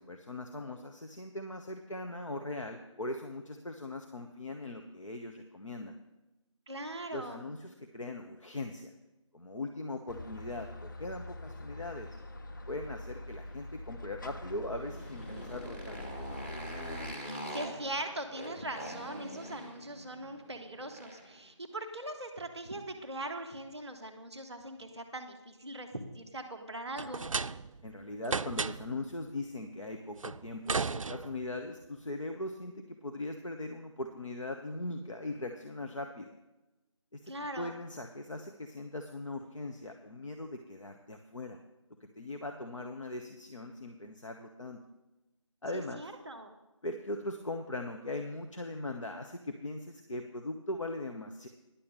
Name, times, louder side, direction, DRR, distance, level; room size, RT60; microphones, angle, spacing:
voice 1, 0.0-5.9 7.1-8.9 9.3-12.1 12.7-16.0 27.8-36.3 37.1-41.6 42.0-44.8 45.6-46.1 46.8-51.5, left 2 dB, 75° left, 4 dB, 1.1 m, -40 dB
voice 2, 6.7-7.4 17.2-27.2 37.3-37.7 45.7-46.5, right 1 dB, 10° right, -10 dB, 0.5 m, -41 dB
sound 1, 10.1-17.1, left 1 dB, 40° left, 0.7 m, -44 dB
Motorcycle, 14.8-21.4, equal, 20° left, 1.6 m, -44 dB
sound 2, 27.0-27.9 28.2-29.0 30.2-31.6, right 4 dB, 90° right, 0.4 m, -34 dB
10.5 x 7.1 x 6.7 m, 1.0 s
figure-of-eight pair, 165°, 17 cm